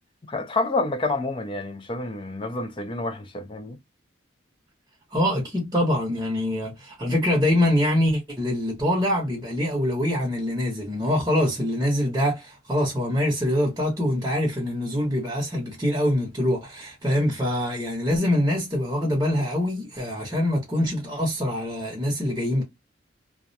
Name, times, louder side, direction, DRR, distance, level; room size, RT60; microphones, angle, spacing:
voice 1, 0.3-3.8, left 2 dB, 25° left, 0.4 m, -28 dB
voice 2, 5.1-22.6, left 1 dB, 15° right, 0.8 m, -24 dB
2.3 x 2.1 x 2.6 m
head